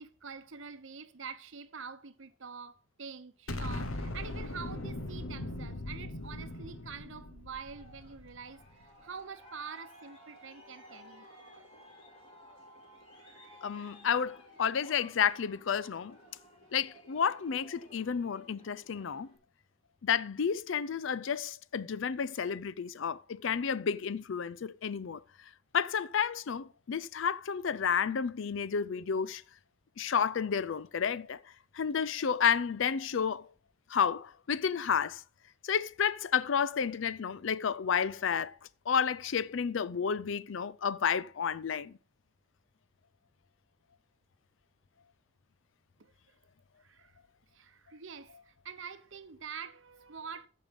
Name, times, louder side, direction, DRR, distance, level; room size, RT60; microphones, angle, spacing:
voice 1, 0.0-11.2 13.2-14.0 46.0-46.3 46.8-47.1 47.5-50.5, right 6 dB, 65° right, 1.0 m, -46 dB
Explosion, 3.5-8.6, left 1 dB, 85° left, 1.2 m, -39 dB
Aircraft, 7.7-19.3, equal, 25° left, 4.3 m, -56 dB
voice 2, 13.6-16.2 16.7-19.3 20.0-25.2 25.7-29.4 30.0-31.4 31.7-33.5 33.9-35.2 35.6-38.6 38.9-41.9, left 7 dB, 65° left, 0.5 m, -31 dB
14.5 x 5.4 x 5.2 m
head